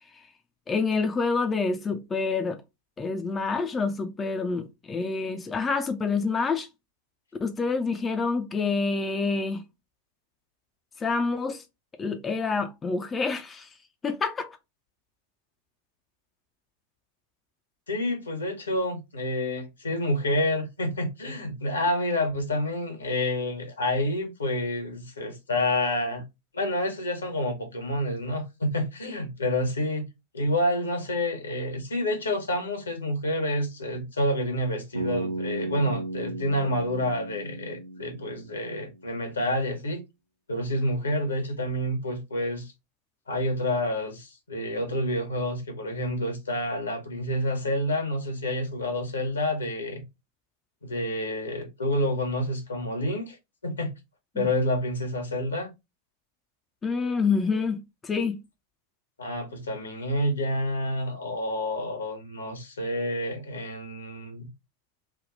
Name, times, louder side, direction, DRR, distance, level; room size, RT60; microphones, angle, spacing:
voice 1, 0.7-2.6 3.0-6.7 7.4-9.6 11.0-11.6 12.0-13.7 14.0-14.6 54.3-54.5 56.8-58.4, left 4 dB, 20° left, 0.5 m, -27 dB
voice 2, 17.9-26.2 26.5-30.1 30.3-40.0 40.5-42.7 43.3-50.0 50.8-53.4 53.6-53.9 54.3-55.7 59.2-64.5, left 1 dB, 75° left, 1.1 m, -28 dB
Bass guitar, 34.9-39.0, right 2 dB, 80° right, 0.7 m, -35 dB
3.5 x 2.2 x 3.8 m
figure-of-eight pair, 90°, 0 cm